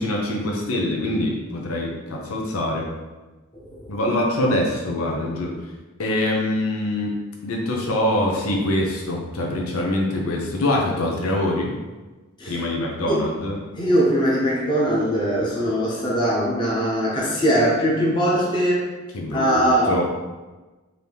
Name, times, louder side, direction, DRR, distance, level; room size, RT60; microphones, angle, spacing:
voice 1, 0.0-2.9 3.9-5.5 6.0-7.1 7.4-11.7 12.5-13.6 19.1-20.0, left 1 dB, 85° left, -1 dB, 0.7 m, -24 dB
voice 2, 3.5-3.9 12.4-12.6 13.1-13.2 13.7-18.8 19.3-20.0, equal, 20° left, -6 dB, 0.9 m, -21 dB
3.8 x 2.8 x 3.4 m, 1.2 s
head